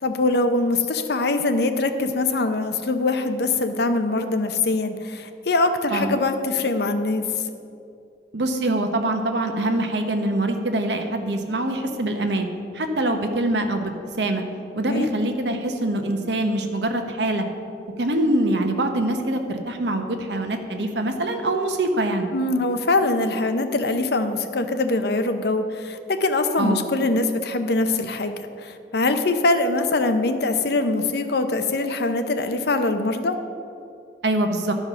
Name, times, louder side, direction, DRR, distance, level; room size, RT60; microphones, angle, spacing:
voice 1, 0.0-7.2 14.9-15.1 22.3-28.4 28.6-33.4, left 2 dB, 65° left, 8 dB, 0.7 m, -23 dB
voice 2, 8.3-12.5 12.7-13.9 14.2-14.4 14.8-17.4 18.0-22.3 26.6-26.8 34.2-34.7, right 1 dB, 75° right, 5 dB, 1.0 m, -24 dB
12.0 x 5.3 x 6.2 m, 2.6 s
head